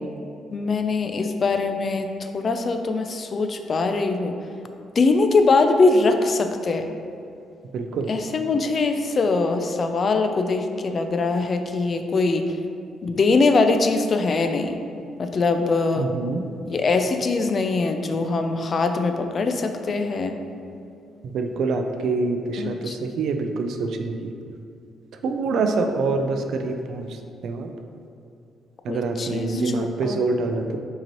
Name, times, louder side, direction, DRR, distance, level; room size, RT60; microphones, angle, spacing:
voice 1, 0.5-2.1 2.3-4.4 5.0-6.9 8.1-12.5 13.0-14.8 15.2-16.1 16.7-20.4 22.6-23.0 28.9-30.2, left 3 dB, 45° left, 7 dB, 0.3 m, -22 dB
voice 2, 7.7-8.1 16.0-16.4 21.2-24.3 25.2-27.2 27.4-27.7 28.8-30.8, right 3 dB, 70° right, 5 dB, 0.3 m, -25 dB
5.2 x 2.9 x 3.0 m, 2.5 s
cardioid pair, 90°, 0 cm